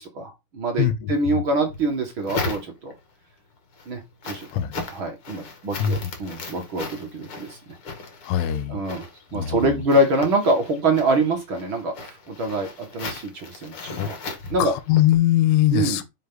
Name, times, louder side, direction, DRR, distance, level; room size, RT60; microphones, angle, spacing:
voice 1, 0.0-2.9 3.8-4.5 4.9-7.6 8.7-9.0 9.3-14.2 14.5-14.7 15.7-16.0, right 2 dB, 55° right, 1.3 m, -25 dB
voice 2, 0.8-1.4 4.5-4.8 5.8-6.1 8.2-8.8 9.3-9.8 13.7-14.1 14.6-16.1, left 12 dB, 90° left, 3.4 m, -22 dB
sound 1, 1.7-3.1 3.6-15.2, left 3 dB, 40° left, 2.1 m, -37 dB
9.6 x 5.7 x 3.9 m
omnidirectional pair, 5.5 m